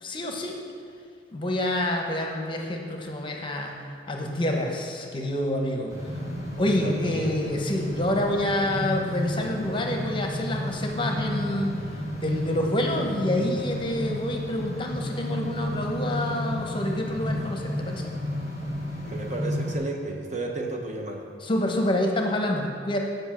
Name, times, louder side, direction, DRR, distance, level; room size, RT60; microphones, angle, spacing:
voice 1, 0.0-0.6 1.3-5.9 6.6-11.8 12.2-18.1 21.4-23.0, left 1 dB, 25° left, 1 dB, 0.9 m, -27 dB
sound 1, 5.9-19.8, left 1 dB, 20° right, 1.3 m, -32 dB
voice 2, 6.6-7.4 19.0-21.3, right 2 dB, 40° right, 1 dB, 0.9 m, -33 dB
7.9 x 5.4 x 7.4 m, 2.3 s
head